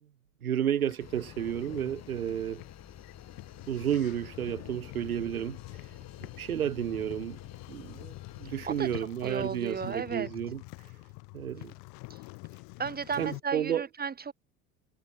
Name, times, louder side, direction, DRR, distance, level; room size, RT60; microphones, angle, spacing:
voice 1, 0.4-2.6 3.7-5.9 6.2-7.4 7.7-8.1 8.4-10.6 11.3-11.7 13.2-13.8, right 10 dB, 80° right, 0.8 m, -32 dB
sound 1, 0.8-13.4, left 30 dB, 55° left, 4.9 m, -47 dB
sound 2, 1.0-9.0, left 10 dB, 35° left, 7.1 m, -50 dB
voice 2, 9.2-10.3 12.1-12.2 12.8-14.3, right 6 dB, 20° right, 2.5 m, -34 dB
figure-of-eight pair, 65°, 42 cm